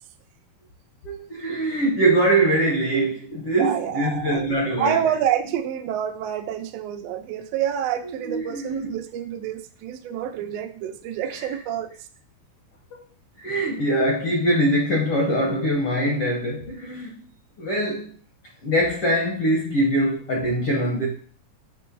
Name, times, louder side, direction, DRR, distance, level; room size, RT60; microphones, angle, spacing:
voice 1, 1.0-5.0 8.2-8.9 13.4-17.2 17.6-18.1 18.6-21.1, right 1 dB, 65° left, 1.4 m, -23 dB
voice 2, 3.6-11.9, right 9 dB, 90° right, 1.4 m, -28 dB
8.0 x 3.1 x 5.8 m
omnidirectional pair, 4.0 m